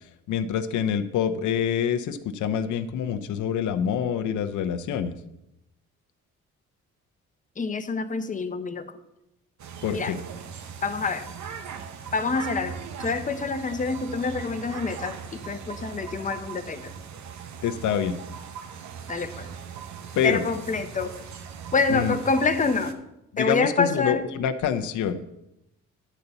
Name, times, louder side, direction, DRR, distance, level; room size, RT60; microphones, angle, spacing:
voice 1, 0.3-5.2 9.8-10.2 17.6-18.2 20.2-20.4 21.9-22.2 23.3-25.2, left 8 dB, 75° left, 11 dB, 0.7 m, -26 dB
voice 2, 7.6-8.8 9.9-10.1 10.8-11.3 12.1-16.9 19.1-19.5 20.2-21.1 21.7-22.9 23.4-24.3, left 4 dB, 25° left, 9 dB, 0.8 m, -27 dB
sound 1, 9.6-22.9, right 7 dB, 65° right, 0.9 m, -39 dB
10.0 x 4.0 x 6.9 m, 0.87 s
cardioid pair, 90°, 30 cm